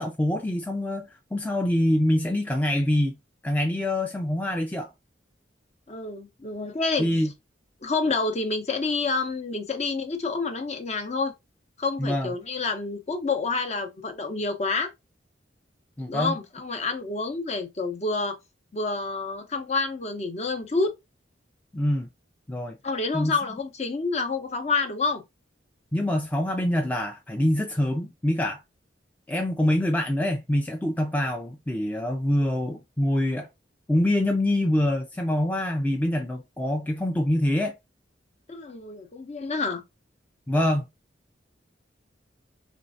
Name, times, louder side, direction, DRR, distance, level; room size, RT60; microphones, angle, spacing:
voice 1, 0.0-3.2 3.4-4.9 7.0-7.3 12.0-12.3 16.0-16.4 21.7-22.1 22.5-22.8 23.1-23.4 25.9-28.6 29.3-33.5 33.9-37.7 40.5-40.9, left 1 dB, 10° left, 0.4 m, -25 dB
voice 2, 5.9-7.1 7.8-11.3 11.8-14.9 16.1-18.4 18.7-20.9 22.8-25.2 38.5-39.8, left 3 dB, 35° left, 0.7 m, -28 dB
4.4 x 3.1 x 2.5 m
head